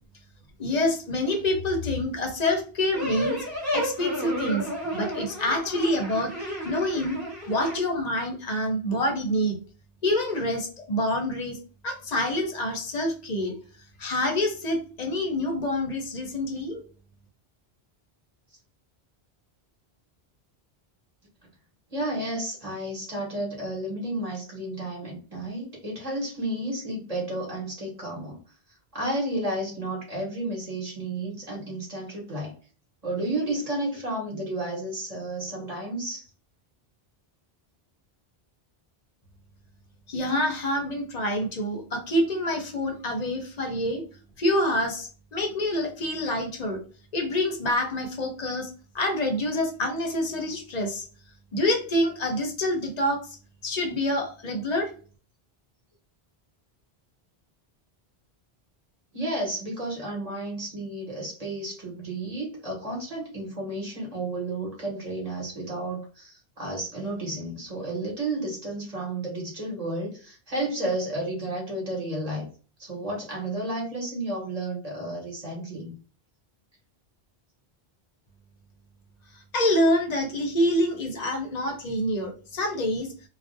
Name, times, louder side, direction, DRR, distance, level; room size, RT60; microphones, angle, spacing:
voice 1, 0.6-3.4 3.7-7.2 7.5-9.6 10.0-11.6 11.8-13.5 14.0-16.8 40.1-44.0 44.4-46.8 47.1-48.7 48.9-51.0 51.5-53.2 53.6-54.9 79.5-83.1, left 1 dB, 50° left, 3 dB, 0.6 m, -27 dB
sound 1, 2.9-7.8, equal, ahead, 1.1 m, -32 dB
voice 2, 21.9-28.4 28.9-32.5 33.0-36.2 59.1-72.5 72.8-75.9, right 1 dB, 40° right, -3 dB, 1.0 m, -32 dB
2.4 x 2.0 x 2.5 m, 0.38 s
omnidirectional pair, 1.1 m